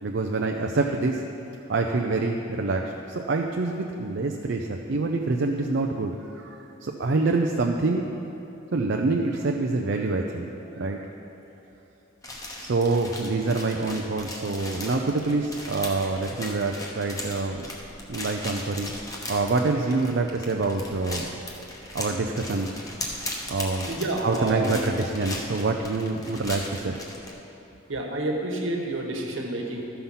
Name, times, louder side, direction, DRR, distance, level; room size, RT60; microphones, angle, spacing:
voice 1, 0.0-1.2 1.7-8.1 8.7-10.5 10.8-11.0 12.6-17.7 18.1-18.9 19.3-21.3 21.9-22.7 23.5-23.9 24.2-27.0, right 3 dB, 60° right, 2 dB, 0.5 m, -26 dB
sound 1, 12.2-27.3, left 1 dB, 15° left, 0.9 m, -38 dB
voice 2, 23.8-24.8 27.9-29.8, right 2 dB, 75° right, 1 dB, 1.3 m, -29 dB
13.5 x 5.7 x 5.6 m, 3.0 s
head